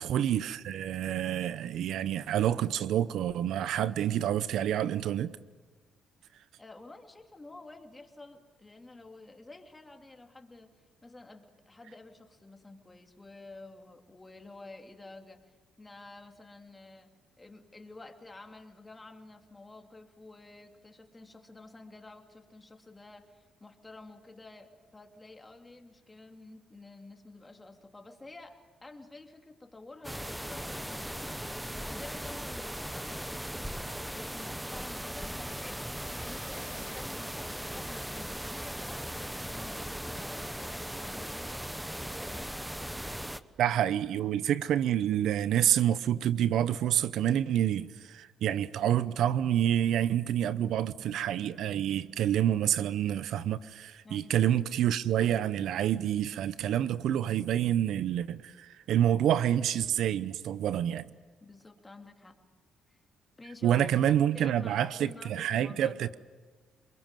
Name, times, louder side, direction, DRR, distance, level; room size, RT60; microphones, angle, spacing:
voice 1, 0.0-5.3 43.6-61.1 63.6-66.1, right 10 dB, 80° right, 0.7 m, -28 dB
voice 2, 6.6-17.1 17.4-31.5 31.8-33.3 34.1-41.7 42.2-42.5 54.0-54.4 61.4-62.4 62.9-63.0 63.4-63.8 64.3-66.1, left 2 dB, 20° left, 3.1 m, -50 dB
sound 1, 30.0-43.4, equal, 5° right, 1.0 m, -38 dB
29.0 x 22.0 x 7.6 m
cardioid pair, 90°, 0 cm